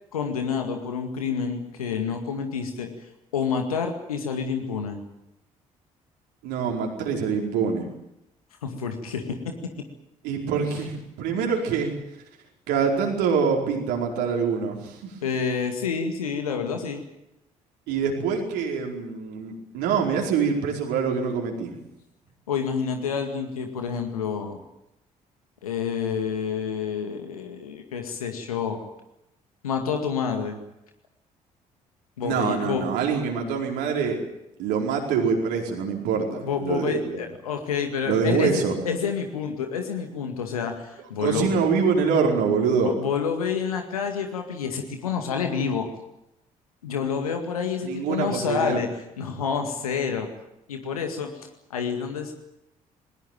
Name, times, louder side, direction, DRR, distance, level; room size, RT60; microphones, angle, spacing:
voice 1, 0.1-2.9 3.3-5.0 8.6-9.5 15.2-17.0 22.5-24.6 25.6-28.8 29.6-30.6 32.2-32.9 36.4-41.5 42.8-45.9 46.8-48.9 49.2-50.3 50.7-52.3, left 6 dB, 80° left, 5 dB, 2.1 m, -28 dB
voice 2, 6.4-7.9 10.2-11.9 12.7-15.2 17.9-21.8 32.2-34.2 34.6-37.2 38.0-38.8 41.2-42.9 47.8-48.8, right 6 dB, 65° right, 1 dB, 4.7 m, -25 dB
20.0 x 19.5 x 9.1 m, 0.88 s
figure-of-eight pair, 45°, 18 cm